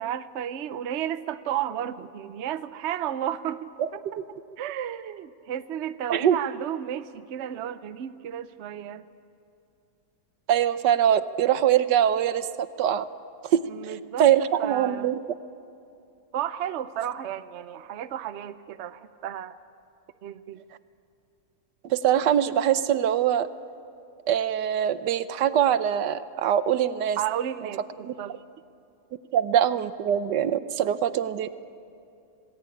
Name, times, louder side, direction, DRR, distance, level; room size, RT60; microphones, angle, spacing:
voice 1, 0.0-4.0 4.6-9.0 13.7-15.1 16.3-19.6 20.2-20.6 27.2-28.4, right 10 dB, 55° right, 13 dB, 0.8 m, -33 dB
voice 2, 10.5-13.0 13.4-13.9 14.2-15.2 21.9-23.5 24.3-27.2 28.0-28.1 29.3-31.6, right 10 dB, 80° right, 13 dB, 1.4 m, -23 dB
27.0 x 19.0 x 8.5 m, 2.6 s
omnidirectional pair, 1.9 m